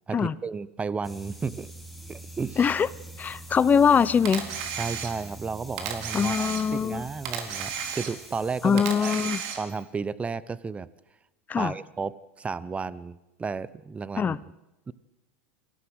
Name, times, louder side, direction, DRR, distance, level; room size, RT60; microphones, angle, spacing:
voice 1, 0.1-1.7 2.1-2.7 4.8-9.3 9.5-10.9 11.6-14.4 14.9-15.0, right 5 dB, 15° right, 18 dB, 0.9 m, -33 dB
sound 1, 1.0-9.1, right 1 dB, ahead, 2.8 m, -45 dB
voice 2, 2.6-2.9 3.2-4.5 6.1-7.0 8.6-9.4 11.5-11.7 14.2-14.4, left 6 dB, 25° left, 20 dB, 0.8 m, -22 dB
Camera, 4.2-5.4 5.8-6.9 7.2-8.4 8.8-9.8, right 8 dB, 60° right, 4.1 m, -33 dB
24.5 x 17.0 x 7.9 m, 0.98 s
hypercardioid pair, 95°, 7 cm